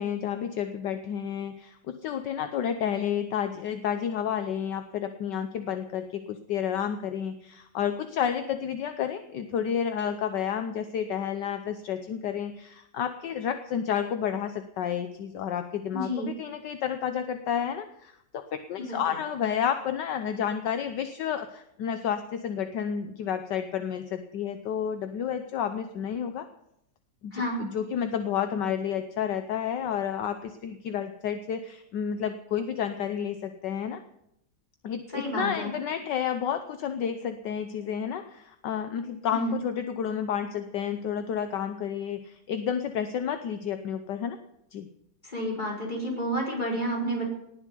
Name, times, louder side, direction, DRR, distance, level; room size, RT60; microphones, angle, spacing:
voice 1, 0.0-26.5 27.2-34.0 34.8-44.4 44.7-44.9, left 8 dB, 70° left, 9 dB, 1.5 m, -31 dB
voice 2, 15.9-16.3 18.9-19.0 27.3-27.6 35.1-35.7 39.3-39.5 45.2-47.3, right 1 dB, 25° left, -1 dB, 4.9 m, -30 dB
19.0 x 7.3 x 9.8 m, 0.79 s
omnidirectional pair, 2.0 m